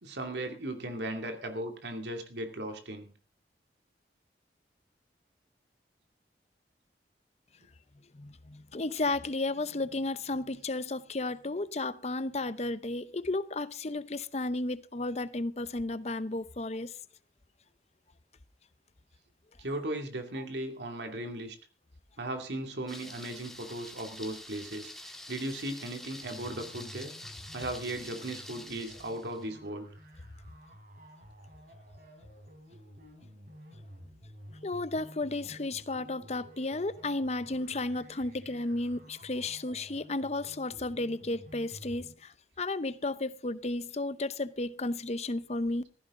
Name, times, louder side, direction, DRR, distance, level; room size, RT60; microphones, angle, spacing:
voice 1, 0.0-3.1 19.6-21.6 22.2-27.1 27.5-29.9, right 1 dB, 80° right, 2.5 m, -37 dB
voice 2, 8.1-16.9 34.6-42.3 42.6-45.8, left 2 dB, 40° left, 0.8 m, -33 dB
Thunder, 22.9-29.5, left 1 dB, ahead, 2.0 m, -47 dB
sound 1, 26.1-42.1, equal, 50° right, 4.2 m, -52 dB
15.5 x 15.0 x 3.8 m
head